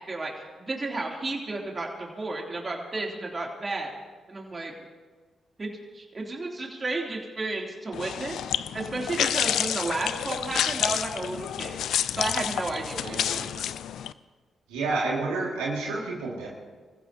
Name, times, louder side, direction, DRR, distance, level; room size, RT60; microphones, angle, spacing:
voice 1, 0.0-3.9 4.3-4.7 5.6-11.8 12.1-13.7, right 2 dB, 35° right, -1 dB, 3.2 m, -33 dB
sound 1, 7.9-14.1, left 10 dB, 75° left, 0.4 m, -29 dB
voice 2, 13.0-13.4 14.7-16.5, right 3 dB, 90° right, -4 dB, 2.3 m, -30 dB
26.0 x 15.0 x 2.9 m, 1.4 s
supercardioid pair, 45°, 0 cm